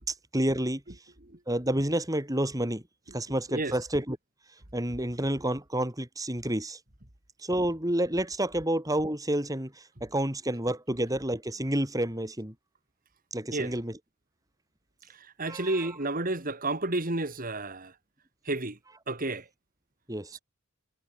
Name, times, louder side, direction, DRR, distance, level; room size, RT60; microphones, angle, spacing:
voice 1, 0.1-1.1 1.5-2.8 3.1-4.2 4.5-6.8 7.4-12.5 13.3-14.0 15.5-16.0 20.1-20.4, right 1 dB, 15° right, 4.9 m, -30 dB
voice 2, 15.4-17.9 18.5-18.8 19.1-19.4, right 2 dB, 40° right, 2.9 m, -30 dB
head